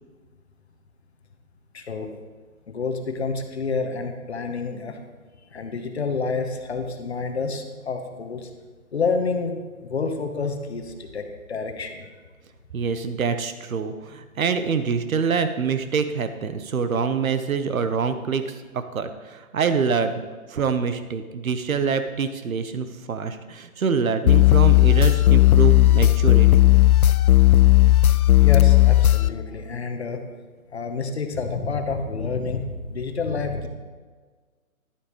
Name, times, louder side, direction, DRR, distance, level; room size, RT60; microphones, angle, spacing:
voice 1, 1.7-2.1 2.7-5.0 5.5-8.5 8.9-12.1 28.4-30.2 30.7-33.7, left 4 dB, 50° left, 5 dB, 1.0 m, -28 dB
voice 2, 12.7-20.2 20.5-26.6, right 5 dB, 70° right, 10 dB, 0.9 m, -25 dB
sound 1, 24.3-29.3, left 14 dB, 85° left, 0.6 m, -15 dB
12.0 x 8.2 x 3.1 m, 1.4 s
hypercardioid pair, 170°, 43 cm